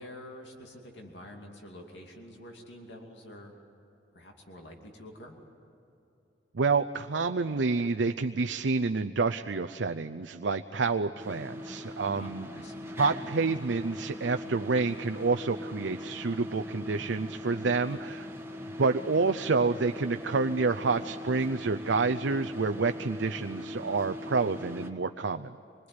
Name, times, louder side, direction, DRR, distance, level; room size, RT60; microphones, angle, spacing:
voice 1, 0.0-3.6 4.1-5.4 12.1-12.8, left 1 dB, 75° left, 1 dB, 2.7 m, -47 dB
voice 2, 6.5-12.5 13.0-18.3 18.8-25.5, right 4 dB, 90° right, 8 dB, 0.6 m, -28 dB
sound 1, 11.2-24.9, left 1 dB, 15° right, 1.5 m, -41 dB
25.5 x 21.0 x 9.7 m, 2.9 s
head